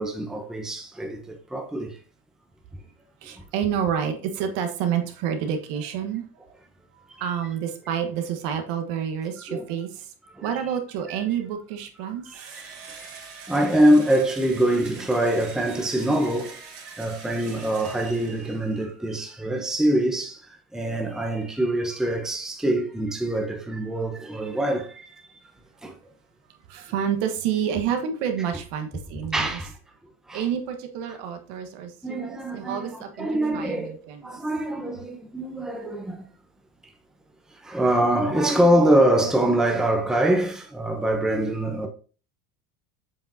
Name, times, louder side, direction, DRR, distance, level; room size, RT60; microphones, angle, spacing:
voice 1, 0.0-2.0 7.1-7.2 9.5-9.6 10.3-10.5 12.3-13.2 13.5-25.2 25.8-25.9 29.3-29.7 30.3-30.4 32.0-34.0 34.2-36.3 37.5-41.9, right 1 dB, ahead, 0.9 m, -24 dB
voice 2, 3.2-6.3 6.9-10.1 10.4-12.4 26.5-29.6 30.3-33.3 33.5-34.4, right 8 dB, 65° right, 1.4 m, -29 dB
Engine / Drill, 12.3-18.9, right 5 dB, 45° right, 2.8 m, -44 dB
7.4 x 5.6 x 2.7 m
supercardioid pair, 100°, 45 cm